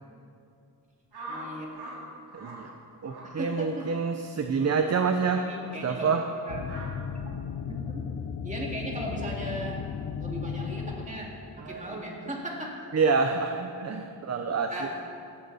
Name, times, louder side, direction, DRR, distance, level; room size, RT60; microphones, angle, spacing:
sound 1, 1.1-2.0 2.3-2.6 3.0-3.3 3.7-3.9 4.5-4.8 5.5-5.7 6.6-6.9, right 2 dB, 70° right, 4.3 m, -43 dB
voice 1, 1.3-1.7 3.2-3.9 4.5-4.9 5.4-6.2 6.5-6.6 7.7-8.0 8.4-9.9 10.2-12.9 14.5-14.9, equal, 20° right, -2 dB, 2.4 m, -37 dB
voice 2, 2.3-2.7 3.0-5.5 5.8-6.2 11.6-12.0 12.9-15.0, right 5 dB, 40° right, 6 dB, 0.7 m, -27 dB
sound 2, 6.5-11.5, left 6 dB, 70° left, 0.9 m, -35 dB
18.0 x 14.0 x 4.2 m, 2.5 s
wide cardioid pair, 175°, 41 cm